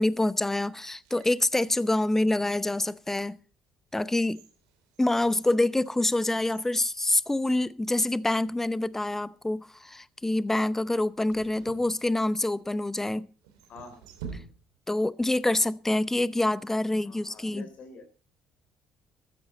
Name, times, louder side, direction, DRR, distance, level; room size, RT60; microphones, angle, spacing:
voice 1, 0.0-3.4 3.9-4.4 5.0-13.3 14.9-17.7, left 2 dB, 10° left, 0.7 m, -26 dB
sound 1, 0.9-2.6 3.2-3.3 3.9-7.7 8.0-8.1 8.9-9.3 11.3-12.6 13.4-15.0 15.2-15.3, right 6 dB, 85° right, 2.7 m, -49 dB
voice 2, 13.7-14.1 17.0-18.0, left 3 dB, 60° left, 3.3 m, -46 dB
14.5 x 13.0 x 4.3 m
hypercardioid pair, 55°, 3 cm